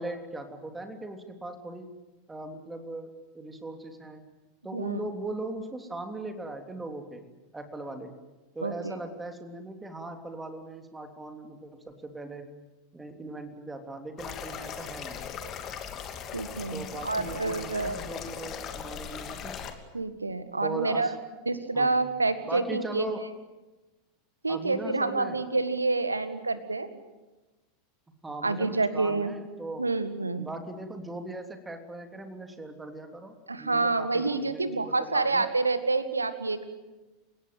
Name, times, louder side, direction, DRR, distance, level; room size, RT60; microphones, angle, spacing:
voice 1, 0.0-1.9 2.3-4.2 4.6-7.2 7.5-8.1 8.5-12.5 12.9-15.3 16.7-19.6 20.6-21.1 21.7-22.0 22.5-23.3 24.5-25.4 28.2-29.9 30.3-35.4, right 2 dB, 10° right, 5 dB, 3.2 m, -39 dB
sound 1, 14.2-19.7, left 8 dB, 35° left, 2.8 m, -39 dB
voice 2, 16.3-18.0 19.9-21.2 21.5-23.0 24.4-26.9 28.4-29.3 29.8-30.5 33.5-36.6, right 3 dB, 80° right, 12 dB, 1.8 m, -28 dB
30.0 x 17.5 x 9.3 m, 1.1 s
figure-of-eight pair, 85°, 0 cm